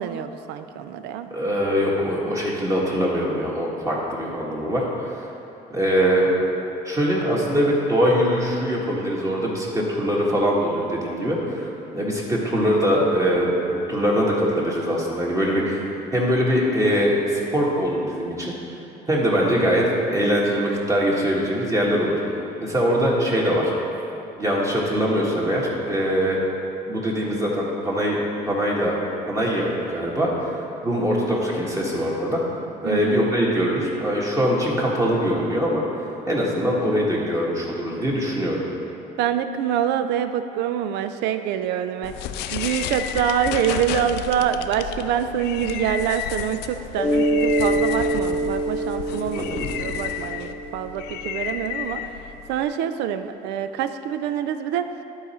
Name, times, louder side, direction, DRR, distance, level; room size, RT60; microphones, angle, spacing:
voice 1, 0.0-1.3 32.8-33.3 39.2-42.2 42.5-49.5 49.8-54.9, right 9 dB, 90° right, 9 dB, 0.4 m, -26 dB
voice 2, 1.3-5.2 5.7-6.3 6.8-15.8 16.1-18.5 19.1-22.1 22.6-23.7 24.4-26.4 26.9-28.2 28.5-28.9 29.3-32.4 32.8-35.8 36.3-38.6 49.3-49.7, equal, 20° right, -4 dB, 1.5 m, -22 dB
sound 1, 42.0-52.6, left 9 dB, 80° left, 0.4 m, -31 dB
Mallet percussion, 47.0-51.4, right 1 dB, 5° left, 0.8 m, -25 dB
11.5 x 4.0 x 4.3 m, 2.9 s
cardioid pair, 110°, 17 cm